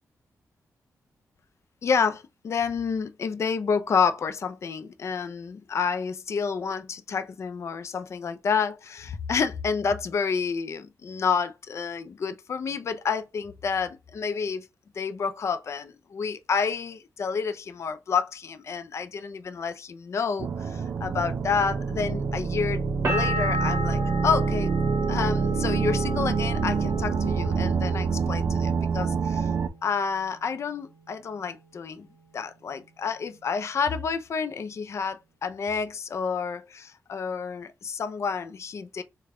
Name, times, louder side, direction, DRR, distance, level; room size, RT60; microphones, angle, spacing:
voice 1, 1.8-14.7 14.9-24.7 25.1-29.5 29.8-32.1 32.3-39.0, left 6 dB, 50° left, 0.4 m, -29 dB
sound 1, 20.4-29.7, right 5 dB, 60° right, 0.4 m, -26 dB
sound 2, 23.0-28.7 29.0-29.7, equal, 40° right, 1.2 m, -34 dB
3.3 x 2.2 x 3.5 m
wide cardioid pair, 105°, 6 cm